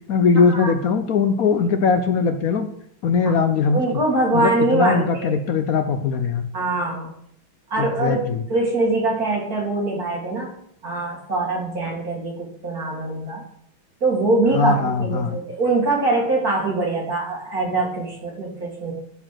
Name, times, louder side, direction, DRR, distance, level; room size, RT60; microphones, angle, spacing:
voice 1, 0.1-2.7 3.0-4.0 4.3-6.5 7.8-8.4 14.5-15.4, left 5 dB, 75° left, 8 dB, 0.8 m, -20 dB
voice 2, 3.7-5.4 6.5-7.1 7.7-8.2 8.5-10.5 10.8-13.4 14.0-14.7 15.0-18.9, right 2 dB, 45° right, -2 dB, 2.7 m, -23 dB
12.5 x 5.0 x 5.8 m, 0.69 s
omnidirectional pair, 2.3 m